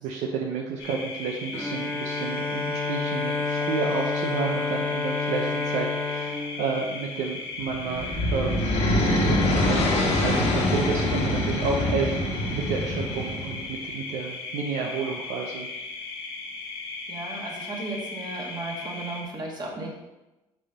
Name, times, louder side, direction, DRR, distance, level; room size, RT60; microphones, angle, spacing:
voice 1, 0.0-8.8 9.2-15.7, right 5 dB, 75° right, 1 dB, 0.7 m, -31 dB
sound 1, 0.8-19.2, left 3 dB, 85° left, 1.2 m, -37 dB
Bowed string instrument, 1.5-7.5, left 4 dB, 10° left, 1.4 m, -29 dB
sound 2, 7.7-13.7, left 1 dB, 65° left, 1.4 m, -25 dB
voice 2, 17.1-19.9, right 2 dB, 35° right, -2 dB, 2.1 m, -35 dB
6.2 x 5.6 x 4.1 m, 1.0 s
supercardioid pair, 65°, 12 cm